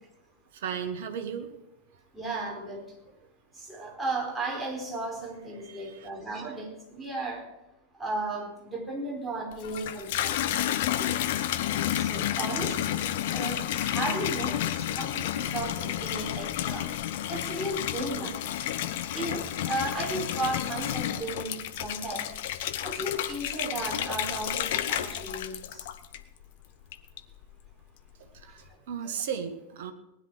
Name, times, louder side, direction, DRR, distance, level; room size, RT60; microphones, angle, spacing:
voice 1, 0.5-1.5 5.6-6.1 28.2-29.9, right 7 dB, 55° right, 6 dB, 1.6 m, -36 dB
voice 2, 2.1-2.9 3.5-7.5 8.0-11.2 11.9-13.0 13.3-16.9 17.3-18.4 19.1-22.3 22.8-25.9 29.0-29.1, right 2 dB, 5° right, -2 dB, 4.6 m, -35 dB
Water tap faucet / Bathtub (filling or washing), 9.5-26.5 26.9-27.5, left 11 dB, 55° left, 0.9 m, -31 dB
19.0 x 10.5 x 5.0 m, 0.95 s
figure-of-eight pair, 90°, 0 cm